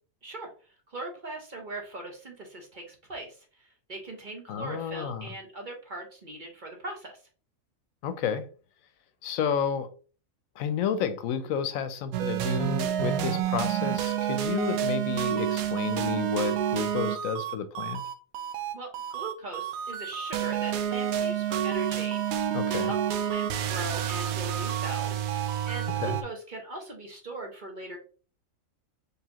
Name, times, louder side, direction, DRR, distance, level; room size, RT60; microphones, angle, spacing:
voice 1, 0.2-7.2 18.7-28.0, right 2 dB, 40° right, 1.0 m, -40 dB
voice 2, 4.5-5.3 8.0-8.5 9.2-9.9 10.6-18.0 22.5-22.9 26.0-26.2, left 7 dB, 75° left, 1.0 m, -31 dB
sound 1, 12.1-26.2, right 10 dB, 85° right, 1.0 m, -29 dB
4.7 x 3.3 x 2.9 m
omnidirectional pair, 1.5 m